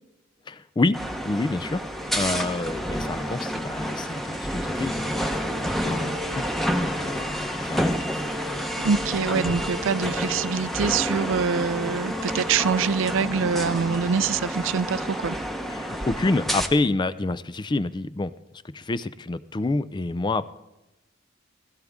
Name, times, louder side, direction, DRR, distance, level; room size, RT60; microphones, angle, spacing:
voice 1, 0.5-1.0 1.2-1.8 2.1-7.9 15.7-18.3 18.6-20.4, left 2 dB, 25° left, 15 dB, 0.4 m, -28 dB
sound 1, 0.9-16.7, equal, ahead, 0.9 m, -29 dB
voice 2, 8.8-15.4, right 6 dB, 70° right, 17 dB, 0.4 m, -25 dB
16.0 x 16.0 x 3.6 m, 0.98 s
head